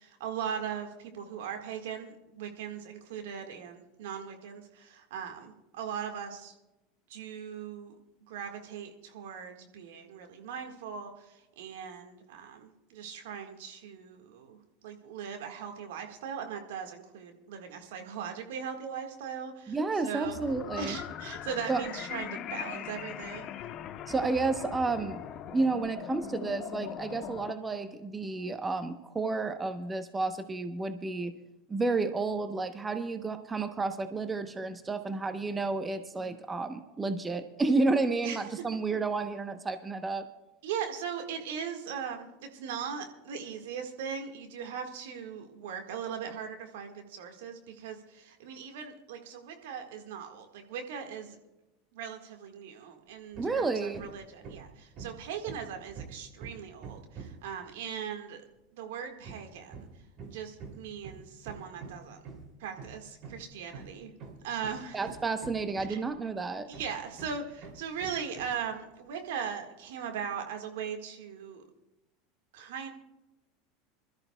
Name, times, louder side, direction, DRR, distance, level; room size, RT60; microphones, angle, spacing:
voice 1, 0.0-6.5 7.1-7.9 8.3-11.1 11.6-14.6 14.8-20.4 20.7-23.5 38.2-38.7 40.6-51.4 51.9-58.4 58.7-59.9 60.3-62.2 62.6-64.1 64.4-65.0 65.9-66.0 66.7-71.6 72.5-72.9, right 7 dB, 70° right, 5 dB, 1.7 m, -39 dB
voice 2, 19.7-21.0 21.7-21.8 24.1-25.2 25.5-31.3 31.7-40.3 53.4-54.0 64.9-66.7, right 3 dB, 20° right, 9 dB, 0.9 m, -31 dB
sound 1, 20.2-27.5, left 10 dB, 45° left, 0.7 m, -40 dB
Hammer, 53.3-53.6 53.9-57.5 59.2-66.2 66.7-68.6, right 5 dB, 50° right, 2.9 m, -46 dB
25.5 x 13.0 x 2.3 m, 0.98 s
hypercardioid pair, 85°, 0 cm